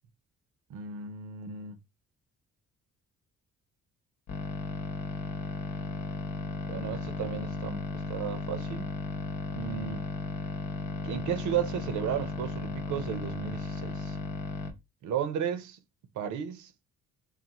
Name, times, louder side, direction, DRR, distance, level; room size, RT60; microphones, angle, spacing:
voice 1, 0.7-1.8 6.7-8.9 9.5-10.1 11.0-14.2 15.0-15.8 16.2-16.7, right 9 dB, 75° right, 0.7 m, -34 dB
sound 1, 4.3-14.7, left 3 dB, 90° left, 0.8 m, -35 dB
4.0 x 2.4 x 2.9 m
cardioid pair, 90°, 30 cm